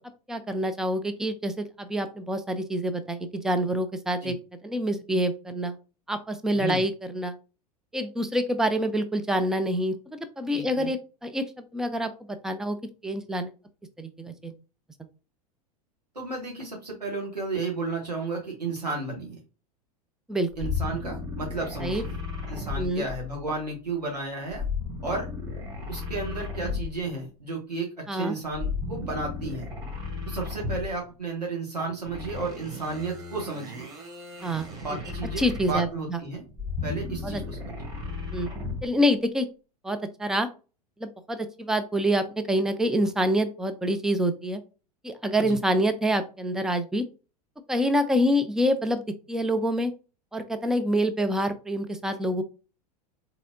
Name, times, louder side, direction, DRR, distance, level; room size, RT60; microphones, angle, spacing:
voice 1, 0.3-4.4 4.6-5.8 6.1-7.4 7.9-12.8 13.0-13.5 14.0-14.5 20.3-20.7 21.8-22.0 22.8-23.0 28.1-28.4 34.4-34.7 35.4-36.2 37.2-37.4 38.3-38.5 38.8-39.5 39.8-40.5 41.0-44.6 45.0-47.1 47.7-49.9 50.3-52.4, equal, 5° right, 8 dB, 0.4 m, -26 dB
voice 2, 10.5-10.9 16.1-19.4 20.6-22.2 22.5-24.6 25.0-25.3 25.9-29.7 30.3-33.9 34.8-36.4 36.8-37.7 45.4-45.6, right 3 dB, 90° right, -2 dB, 1.0 m, -33 dB
sound 1, 20.5-23.6 24.5-27.2 28.5-31.1 32.0-36.0 36.5-39.0, left 4 dB, 20° right, 1.2 m, -34 dB
4.0 x 2.9 x 2.5 m, 0.33 s
figure-of-eight pair, 85°, 20 cm